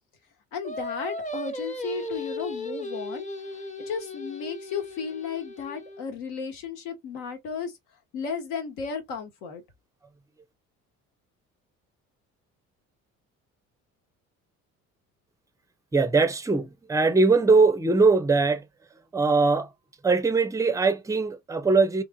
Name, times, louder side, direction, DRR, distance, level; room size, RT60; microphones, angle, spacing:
voice 1, 0.5-3.3 3.8-7.7 8.1-9.6, left 6 dB, 65° left, 1.2 m, -34 dB
Singing, 0.6-6.0, left 1 dB, 15° left, 0.8 m, -36 dB
voice 2, 15.9-18.7 19.1-19.7 20.0-22.0, right 4 dB, 10° right, 0.6 m, -21 dB
3.7 x 2.9 x 2.2 m
figure-of-eight pair, 50°, 42 cm